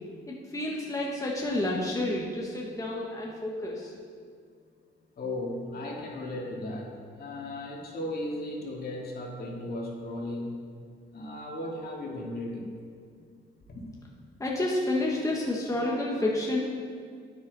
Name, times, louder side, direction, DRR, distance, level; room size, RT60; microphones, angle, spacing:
voice 1, 0.3-3.9 14.4-16.6, left 1 dB, 15° left, -3 dB, 1.4 m, -30 dB
voice 2, 5.2-6.9 7.2-10.7 11.1-12.7 13.7-13.9, left 1 dB, 50° left, -2 dB, 2.4 m, -36 dB
10.0 x 9.3 x 4.1 m, 2.1 s
cardioid pair, 90°, 20 cm